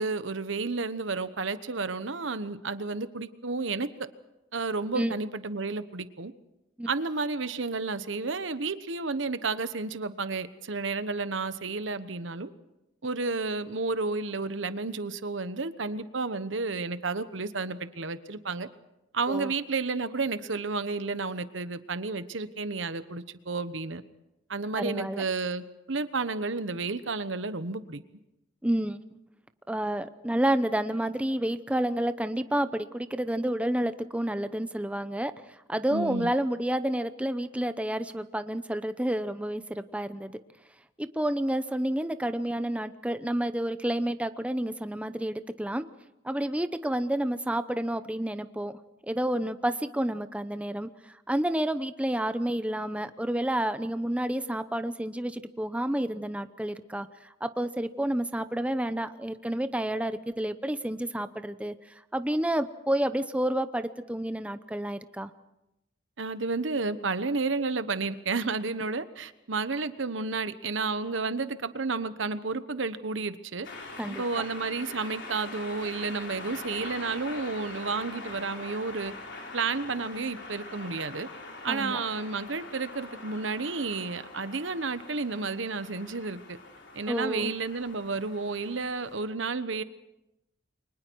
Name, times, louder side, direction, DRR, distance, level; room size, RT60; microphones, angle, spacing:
voice 1, 0.0-4.1 4.5-6.3 6.9-12.5 13.0-18.7 19.1-24.0 24.5-28.0 35.9-36.3 66.2-73.7 74.1-79.1 79.5-81.3 81.6-86.6 86.9-89.8, right 4 dB, 75° right, 12 dB, 1.1 m, -31 dB
voice 2, 24.8-25.2 28.6-29.2 29.7-35.3 35.7-40.3 41.0-45.9 46.2-48.8 49.0-61.7 62.1-65.3 74.0-74.4 81.7-82.0 87.1-87.5, right 1 dB, 5° right, 11 dB, 0.7 m, -30 dB
sound 1, 73.6-89.2, left 3 dB, 65° left, 4.4 m, -43 dB
29.5 x 24.0 x 4.7 m, 0.92 s
head